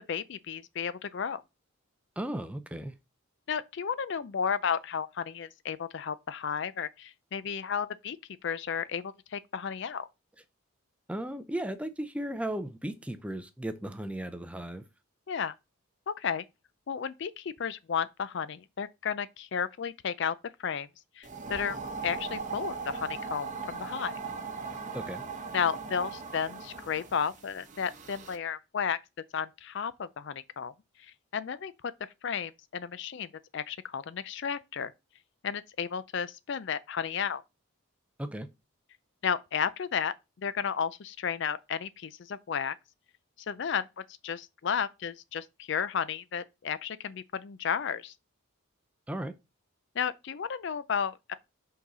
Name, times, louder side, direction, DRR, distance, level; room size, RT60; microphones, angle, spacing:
voice 1, 0.0-1.4 3.5-8.2 8.4-10.1 15.3-15.5 16.1-16.4 16.9-20.3 20.6-20.9 21.2-21.8 22.0-24.2 25.5-29.0 29.3-30.7 31.0-31.7 32.2-34.9 35.4-37.4 39.2-42.8 43.5-43.9 44.2-48.1 49.9-51.3, left 7 dB, 55° left, 0.4 m, -33 dB
voice 2, 2.2-2.9 11.1-14.8 24.9-25.2 38.2-38.5 49.1-49.3, right 1 dB, 5° right, 0.5 m, -35 dB
sound 1, 21.2-28.4, right 4 dB, 35° right, 0.9 m, -39 dB
5.6 x 3.9 x 5.4 m
head